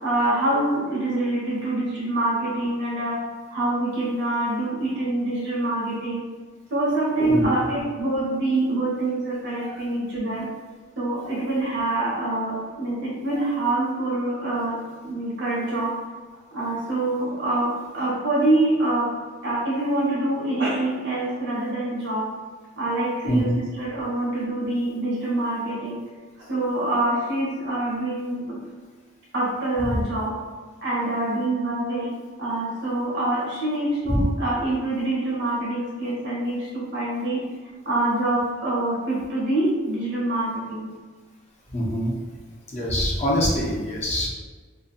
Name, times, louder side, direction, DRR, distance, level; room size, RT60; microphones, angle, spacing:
voice 1, 0.0-3.2 3.5-6.2 6.7-10.5 11.0-14.8 15.0-15.9 16.5-19.1 19.4-22.2 22.8-26.0 26.5-28.6 29.3-30.3 30.8-32.1 32.4-37.4 37.8-40.9, right 2 dB, 55° right, -6 dB, 0.8 m, -25 dB
voice 2, 7.2-7.5 9.6-9.8 23.3-23.6 34.1-34.2 41.7-42.1 42.7-44.3, equal, 30° left, -4 dB, 0.5 m, -24 dB
2.7 x 2.2 x 2.4 m, 1.4 s
head